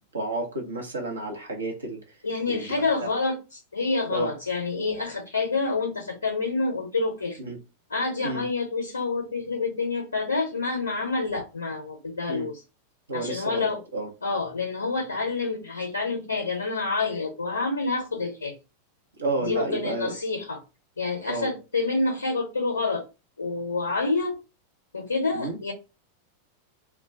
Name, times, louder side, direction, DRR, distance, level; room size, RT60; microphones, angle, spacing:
voice 1, 0.1-2.0 2.5-2.6 3.0-3.1 4.1-4.3 7.4-7.6 8.2-8.5 12.3-12.5 13.1-14.1 19.2-20.2 21.3-21.5 25.3-25.6, right 2 dB, 75° right, 0.8 m, -31 dB
voice 2, 2.2-7.4 7.9-12.6 13.1-13.8 14.2-18.5 19.4-20.6 21.0-23.0 23.4-24.4 24.9-25.7, left 3 dB, 75° left, 0.6 m, -28 dB
2.3 x 2.2 x 3.6 m
figure-of-eight pair, 90°, 0 cm